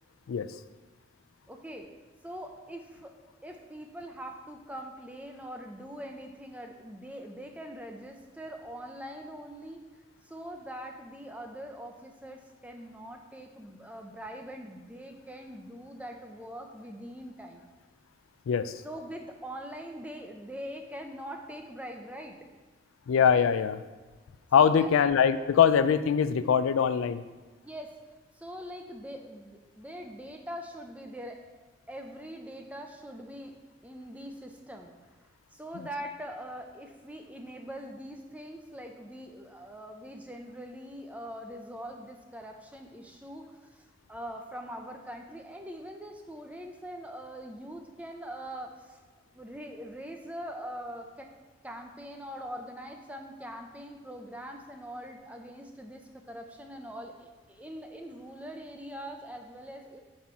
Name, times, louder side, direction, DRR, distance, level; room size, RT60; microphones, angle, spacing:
voice 1, 1.5-1.9 2.2-3.1 3.4-9.8 10.2-17.7 18.8-22.4 24.6-24.9 27.6-28.0 28.3-31.4 31.9-33.5 33.8-34.9 35.2-43.4 43.7-49.0 49.3-51.3 51.6-60.0, equal, 5° right, 3 dB, 0.6 m, -42 dB
voice 2, 23.1-23.8 24.5-27.2, left 7 dB, 80° left, 13 dB, 0.4 m, -23 dB
7.4 x 4.3 x 5.8 m, 1.3 s
head